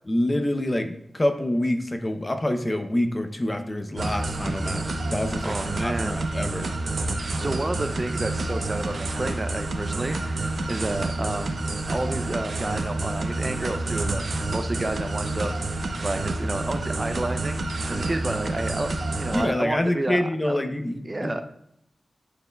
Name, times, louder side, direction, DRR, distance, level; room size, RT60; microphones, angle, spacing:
voice 1, 0.1-4.8 5.1-6.7 19.3-21.4, left 1 dB, 25° left, 7 dB, 0.7 m, -26 dB
sound 1, 4.0-19.5, right 2 dB, 75° right, 0.7 m, -29 dB
voice 2, 5.4-6.2 7.4-11.6 11.9-14.2 14.5-15.5 16.0-17.6 17.9-18.9 19.2-20.6 21.0-21.4, right 2 dB, 35° right, 8 dB, 0.4 m, -30 dB
11.0 x 4.6 x 2.2 m, 0.75 s
cardioid pair, 60°, 0 cm